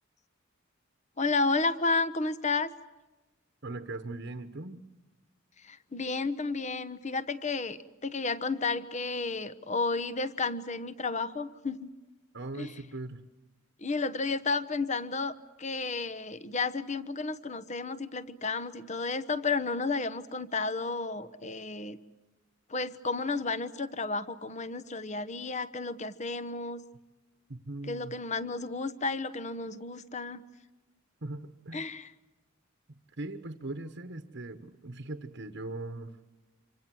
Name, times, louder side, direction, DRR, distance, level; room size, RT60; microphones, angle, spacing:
voice 1, 1.2-2.7 5.6-11.9 12.6-12.7 13.8-15.3 15.6-22.0 22.7-26.8 27.9-30.4 31.7-32.1, left 3 dB, 35° left, 14 dB, 1.1 m, -32 dB
voice 2, 3.6-4.8 12.3-13.2 27.5-28.2 31.2-31.9 32.9-36.1, right 2 dB, 55° right, 7 dB, 1.3 m, -40 dB
27.0 x 25.0 x 7.7 m, 1.1 s
head